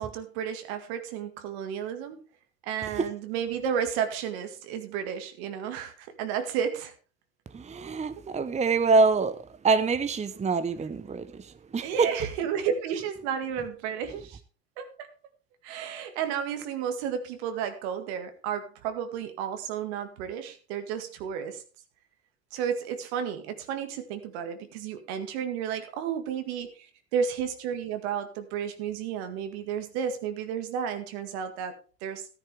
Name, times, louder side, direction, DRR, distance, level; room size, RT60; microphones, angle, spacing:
voice 1, 0.0-2.2 2.6-6.9 11.8-14.4 14.8-15.1 15.6-21.6 22.5-32.3, right 8 dB, 70° right, 2.0 m, -32 dB
voice 2, 7.5-12.1, right 4 dB, 20° right, 0.9 m, -25 dB
14.0 x 9.6 x 3.5 m
hypercardioid pair, 75°, 33 cm